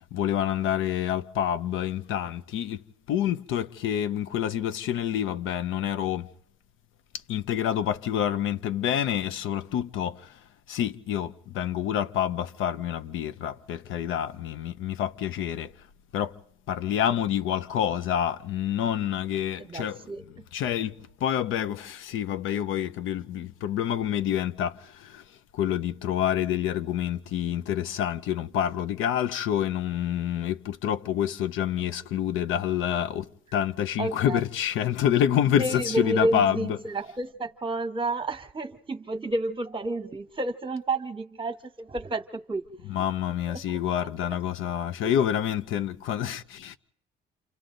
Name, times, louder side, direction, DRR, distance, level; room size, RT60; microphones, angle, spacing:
voice 1, 0.0-2.8 3.1-6.3 7.3-10.4 10.7-15.7 16.1-16.3 16.7-20.1 20.5-25.2 25.5-36.7 42.9-46.8, left 10 dB, 85° left, 0.8 m, -27 dB
voice 2, 19.6-20.5 34.0-34.4 35.6-42.9 43.5-43.8 45.0-45.2, right 2 dB, 25° right, 1.3 m, -31 dB
28.5 x 25.5 x 3.9 m
cardioid pair, 90°, 20 cm